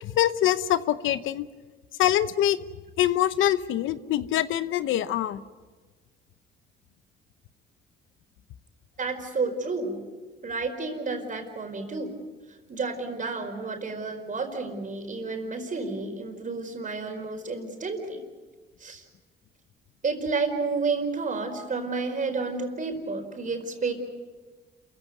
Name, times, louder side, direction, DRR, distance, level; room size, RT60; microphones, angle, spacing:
voice 1, 0.0-1.5 2.0-2.6 3.0-5.4, left 12 dB, 85° left, 13 dB, 0.9 m, -24 dB
voice 2, 9.0-10.0 10.4-12.1 12.7-18.2 18.8-19.0 20.0-23.9, right 4 dB, 40° right, 5 dB, 4.8 m, -30 dB
27.5 x 15.5 x 9.5 m, 1.4 s
cardioid pair, 90°, 20 cm